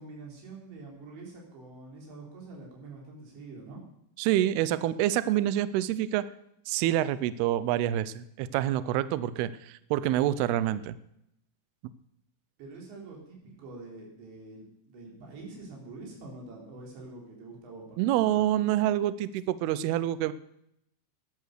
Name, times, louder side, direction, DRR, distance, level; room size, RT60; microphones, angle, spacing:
voice 1, 0.0-3.8 12.6-18.5, right 3 dB, 70° right, -1 dB, 5.8 m, -46 dB
voice 2, 4.2-6.3 6.7-11.0 18.0-20.3, right 13 dB, 85° right, 16 dB, 2.2 m, -27 dB
13.0 x 11.0 x 6.6 m, 0.79 s
omnidirectional pair, 5.3 m